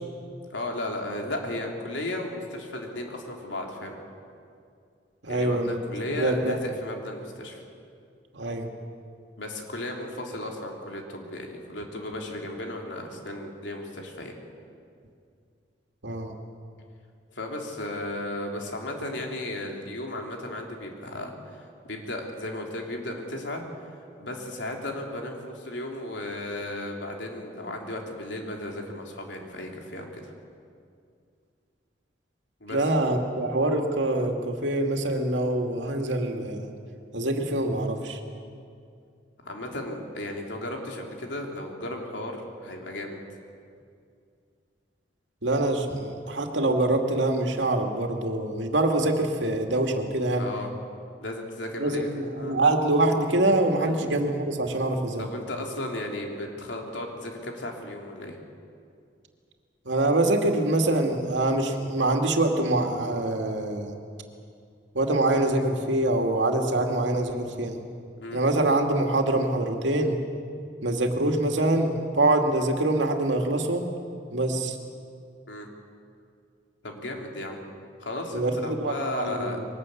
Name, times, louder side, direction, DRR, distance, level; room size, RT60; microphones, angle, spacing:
voice 1, 0.5-4.0 5.3-7.6 9.4-14.3 17.3-23.6 24.2-30.3 32.6-32.9 39.4-43.2 50.3-50.7 51.2-52.1 52.4-52.6 53.8-54.0 55.2-58.4 68.2-68.4 75.5-75.7 76.8-77.6 78.0-79.6, left 1 dB, 80° left, 1 dB, 3.6 m, -35 dB
voice 2, 5.2-5.8 6.1-6.6 8.3-8.7 16.0-16.3 32.7-36.7 37.1-38.2 45.4-50.4 51.8-55.3 59.9-63.9 64.9-67.8 68.3-70.2 70.8-73.9 74.3-74.8 78.3-79.7, right 2 dB, 85° right, 3 dB, 2.5 m, -25 dB
22.5 x 19.0 x 8.6 m, 2.4 s
head